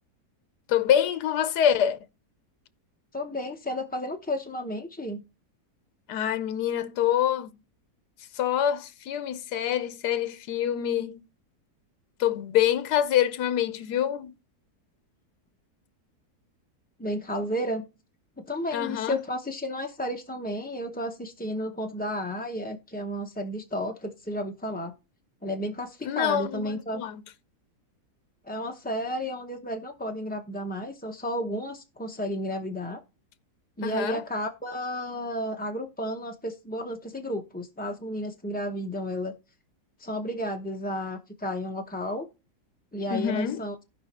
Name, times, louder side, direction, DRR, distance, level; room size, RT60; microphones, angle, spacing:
voice 1, 0.7-2.0 6.1-7.5 8.3-11.2 12.2-14.3 18.7-19.2 26.0-27.2 33.8-34.2 43.1-43.6, left 10 dB, 90° left, 1.3 m, -26 dB
voice 2, 3.1-5.2 17.0-17.9 18.4-24.9 25.4-27.0 28.4-33.0 33.8-39.3 40.0-42.3 42.9-43.7, equal, 10° left, 0.4 m, -32 dB
15.5 x 5.2 x 4.2 m
omnidirectional pair, 1.7 m